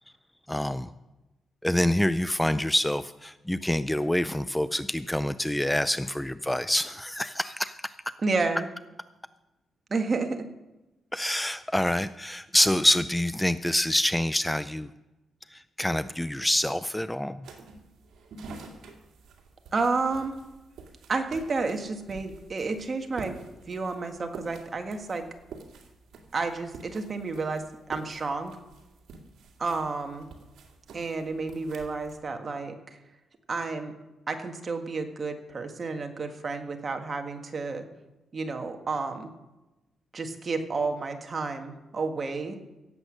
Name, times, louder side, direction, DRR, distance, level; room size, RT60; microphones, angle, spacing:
voice 1, 0.5-0.9 1.6-7.9 11.1-14.9 15.5-17.4, left 1 dB, 5° left, 13 dB, 0.4 m, -26 dB
voice 2, 8.2-8.7 9.9-10.5 19.7-20.4 21.1-23.4 23.7-25.3 26.3-28.6 29.6-30.3 30.9-33.0 33.5-33.9 34.3-37.8 38.3-39.3 40.1-42.6, right 3 dB, 40° right, 5 dB, 1.7 m, -31 dB
sound 1, 17.4-32.2, right 4 dB, 80° right, 2.2 m, -48 dB
17.0 x 8.0 x 6.4 m, 1.0 s
cardioid pair, 85°, 0 cm